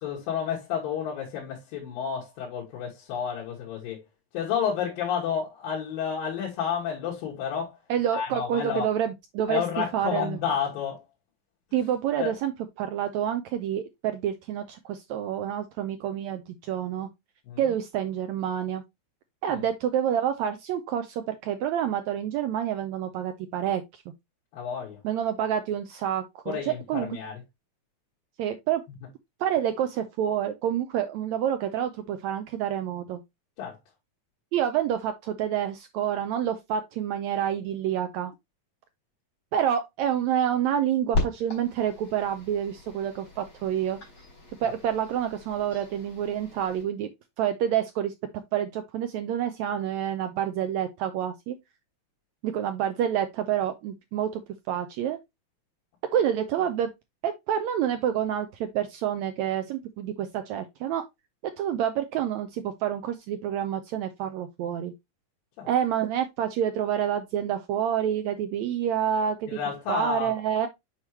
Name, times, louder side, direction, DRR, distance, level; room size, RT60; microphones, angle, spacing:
voice 1, 0.0-4.0 4.3-7.8 8.1-8.9 9.5-11.0 12.2-12.3 17.5-17.7 19.5-19.7 24.5-25.0 26.5-27.4 33.6-33.8 44.6-44.7 65.6-65.7 69.5-70.4, left 7 dB, 90° left, 3.2 m, -31 dB
voice 2, 7.9-9.6 9.9-10.4 11.7-12.5 12.8-17.1 17.6-18.8 19.4-24.0 25.0-27.1 28.4-28.8 29.4-33.2 34.5-38.3 39.5-44.0 44.6-47.1 47.4-48.1 48.5-51.6 52.4-54.4 54.7-55.2 56.1-56.9 57.2-61.0 61.6-64.9 65.6-69.6 69.9-70.7, right 9 dB, 85° right, 1.6 m, -28 dB
sound 1, 41.1-46.8, left 2 dB, 35° left, 4.3 m, -36 dB
7.3 x 4.8 x 3.0 m
omnidirectional pair, 3.9 m